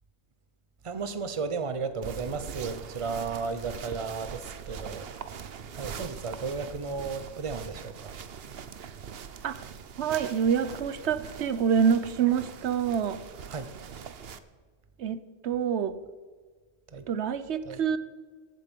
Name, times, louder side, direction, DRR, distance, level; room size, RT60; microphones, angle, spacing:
voice 1, 0.8-5.2 5.7-8.1 13.5-13.7 16.9-17.1 17.7-17.8, right 4 dB, 30° right, 11 dB, 0.9 m, -34 dB
sound 1, 2.0-14.4, right 7 dB, 65° right, 1.0 m, -42 dB
voice 2, 10.0-13.2 15.0-16.0 17.1-18.0, right 7 dB, 80° right, 14 dB, 1.0 m, -26 dB
15.0 x 12.0 x 5.3 m, 1.5 s
omnidirectional pair, 1.1 m